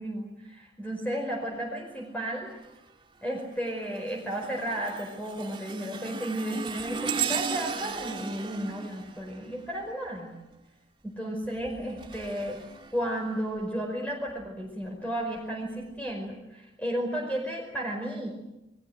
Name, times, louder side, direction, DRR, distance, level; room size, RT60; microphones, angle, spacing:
voice 1, 0.0-2.5 3.2-10.3 11.0-12.6 12.9-18.3, right 1 dB, 10° left, 0 dB, 5.1 m, -33 dB
sound 1, 2.5-2.9 3.4-10.2 11.4-13.6 14.3-14.5 15.4-15.5, right 6 dB, 25° right, 2.4 m, -37 dB
30.0 x 22.5 x 8.0 m, 0.95 s
head